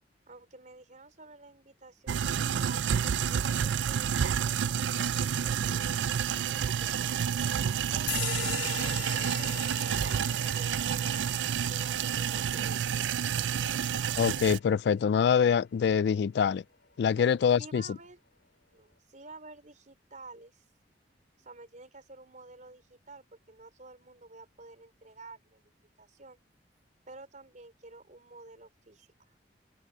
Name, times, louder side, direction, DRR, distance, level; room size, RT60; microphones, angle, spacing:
voice 1, 0.3-2.8 3.3-5.9 6.5-7.2 7.9-11.2 11.7-13.2 13.7-13.9 17.2-17.3 17.6-18.2 18.7-20.6 21.4-26.4 27.1-29.3, right 3 dB, 45° right, 4.4 m, -51 dB
sound 1, 2.1-14.6, right 8 dB, 80° right, 0.4 m, -29 dB
sound 2, 8.1-15.1, left 9 dB, 80° left, 3.2 m, -41 dB
voice 2, 14.2-16.6 17.0-17.8, left 7 dB, 65° left, 0.3 m, -25 dB
open air
head